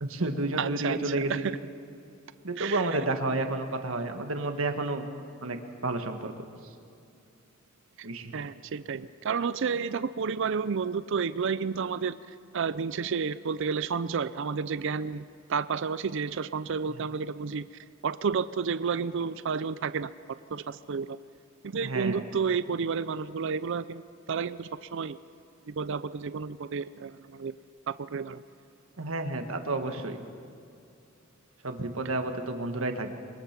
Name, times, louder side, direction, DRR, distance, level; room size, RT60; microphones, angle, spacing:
voice 1, 0.0-1.5 2.4-5.0 5.4-5.6 5.8-6.4 8.0-8.3 16.9-17.0 21.8-22.2 29.0-30.2 31.6-33.1, right 2 dB, 80° right, 6 dB, 1.5 m, -31 dB
voice 2, 0.6-1.0 1.3-1.5 2.6-2.8 8.3-12.2 12.5-15.2 15.5-17.7 18.0-20.1 20.5-21.2 21.6-24.0 24.3-25.2 25.7-27.5 27.9-28.4, right 5 dB, 65° right, 14 dB, 0.5 m, -31 dB
23.0 x 21.5 x 6.0 m, 2.5 s
head